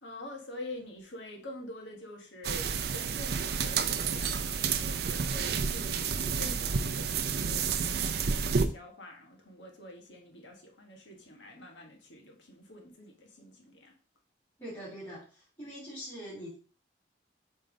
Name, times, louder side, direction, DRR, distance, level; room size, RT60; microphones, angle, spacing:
voice 1, 0.0-14.0, left 2 dB, 85° left, 1.4 m, -46 dB
sound 1, 2.4-8.7, right 6 dB, 60° right, 0.5 m, -30 dB
voice 2, 14.6-16.6, equal, 25° left, 2.4 m, -43 dB
5.3 x 3.5 x 5.1 m
head